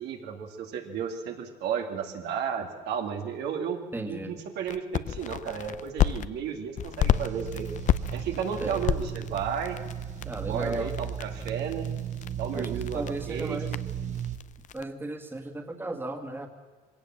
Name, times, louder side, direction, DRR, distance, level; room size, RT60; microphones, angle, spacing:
voice 1, 0.0-3.8 4.1-7.7 8.1-9.8 10.5-11.9 12.4-13.8, right 7 dB, 80° right, 3 dB, 2.3 m, -33 dB
voice 2, 3.9-4.4 8.6-8.8 10.2-10.9 12.5-13.7 14.7-16.5, right 2 dB, 15° right, 5 dB, 2.0 m, -35 dB
sound 1, 4.7-6.3 6.8-14.8, left 10 dB, 50° left, 0.6 m, -31 dB
sound 2, 7.1-14.4, right 9 dB, 45° right, 1.2 m, -35 dB
21.5 x 17.0 x 7.5 m, 1.4 s
cardioid pair, 110°, 17 cm